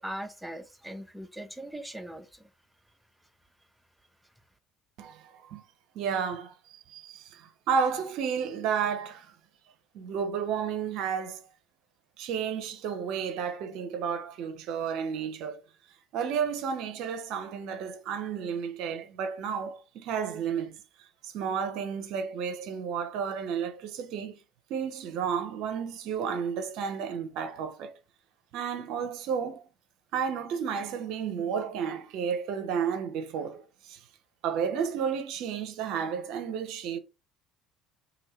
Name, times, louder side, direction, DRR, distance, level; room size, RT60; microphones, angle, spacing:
voice 1, 0.0-2.4, right 1 dB, 5° right, 0.7 m, -40 dB
voice 2, 5.0-5.6 5.9-9.3 9.9-11.4 12.2-15.6 16.1-20.8 21.2-24.4 24.7-28.0 28.5-29.6 30.1-34.0 34.4-37.0, right 7 dB, 60° right, 0.6 m, -32 dB
2.7 x 2.6 x 3.1 m
figure-of-eight pair, 60°, 0 cm